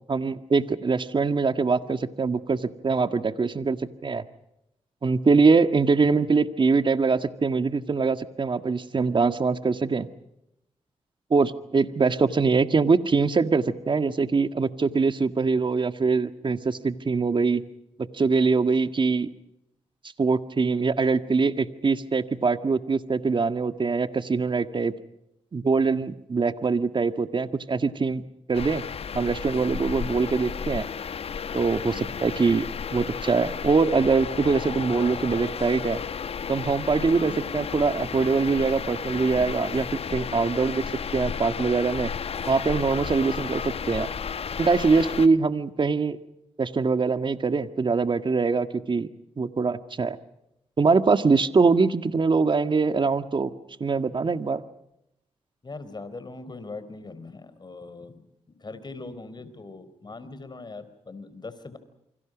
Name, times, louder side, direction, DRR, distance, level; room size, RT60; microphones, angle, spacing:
voice 1, 0.1-4.2 5.0-10.1 11.3-17.6 18.0-19.3 20.2-24.9 25.5-28.2 28.5-28.8 29.1-30.9 31.5-36.0 36.5-42.1 42.5-44.1 44.6-46.2 46.6-49.1 49.4-50.2 50.8-53.5 53.8-54.6, right 4 dB, 45° right, 10 dB, 1.8 m, -23 dB
sound 1, 28.5-45.3, left 6 dB, 60° left, 1.0 m, -33 dB
voice 2, 37.1-37.5 55.6-61.8, left 3 dB, 40° left, 12 dB, 4.2 m, -41 dB
28.0 x 25.0 x 5.2 m, 0.83 s
cardioid pair, 65°, 12 cm